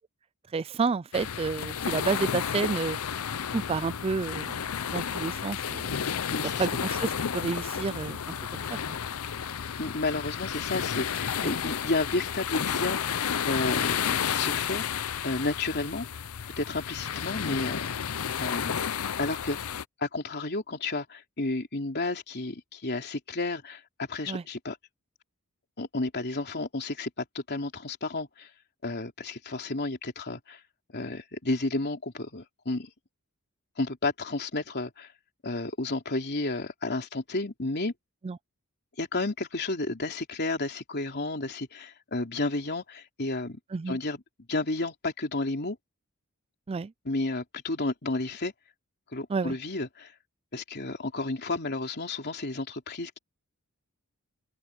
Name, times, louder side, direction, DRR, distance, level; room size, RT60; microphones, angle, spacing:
voice 1, 0.5-3.0 3.5-4.6 4.9-6.1 6.4-8.2 8.5-8.8 11.4-11.5 24.3-24.4 38.2-38.4 43.7-44.0 46.7-46.9 49.3-49.6, right 4 dB, 25° right, 0.3 m, -30 dB
sound 1, 1.1-19.8, left 8 dB, 85° left, 0.7 m, -32 dB
voice 2, 6.3-6.7 9.8-16.2 16.6-17.9 18.4-18.9 19.2-19.6 20.0-24.8 25.8-28.5 28.8-30.6 30.9-32.9 33.8-35.1 35.4-37.9 39.0-43.6 43.9-44.2 44.5-45.8 47.0-48.5 49.1-50.1 50.5-53.2, left 2 dB, 50° left, 3.3 m, -32 dB
head